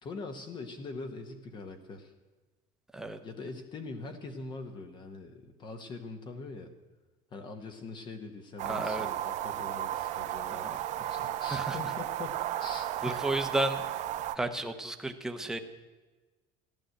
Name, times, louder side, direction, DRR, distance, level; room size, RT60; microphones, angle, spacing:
voice 1, 0.0-2.1 3.2-6.7 7.3-13.3, left 3 dB, 30° left, 7 dB, 1.0 m, -43 dB
voice 2, 8.6-9.1 10.5-10.8 11.5-11.9 13.0-13.8 14.3-15.6, right 1 dB, 5° right, 6 dB, 0.8 m, -33 dB
sound 1, 8.6-14.4, right 12 dB, 45° right, 0.7 m, -34 dB
14.0 x 11.5 x 7.7 m, 1.2 s
cardioid pair, 175°, 17 cm